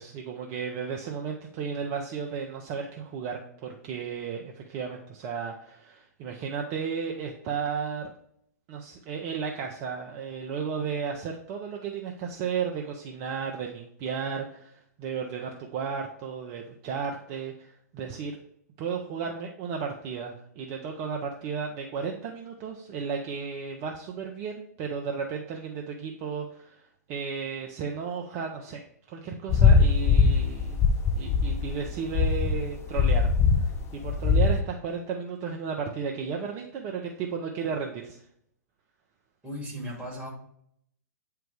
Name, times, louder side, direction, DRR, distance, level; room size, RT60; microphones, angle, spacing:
voice 1, 0.0-8.1 8.7-18.4 18.8-28.8 29.1-30.8 31.2-33.3 33.6-38.2, right 6 dB, 35° right, 1 dB, 0.8 m, -34 dB
sound 1, 29.5-34.6, left 5 dB, 30° left, 0.9 m, -21 dB
voice 2, 39.4-40.3, equal, 10° right, -1 dB, 2.5 m, -36 dB
8.9 x 3.4 x 3.3 m, 0.69 s
figure-of-eight pair, 110°, 9 cm